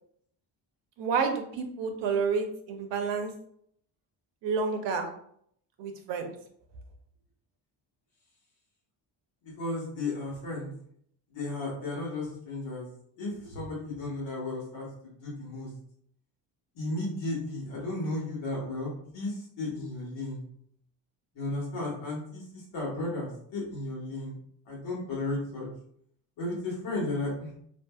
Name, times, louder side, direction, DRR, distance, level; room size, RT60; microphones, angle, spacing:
voice 1, 1.0-3.3 4.4-5.1 5.8-6.3, right 5 dB, 75° right, 5 dB, 0.7 m, -29 dB
voice 2, 9.4-10.7 11.3-12.9 13.2-15.7 16.7-20.4 21.3-24.4 24.7-25.7 26.4-27.6, left 2 dB, 90° left, -4 dB, 1.4 m, -34 dB
2.7 x 2.6 x 2.3 m, 0.67 s
cardioid pair, 120°, 43 cm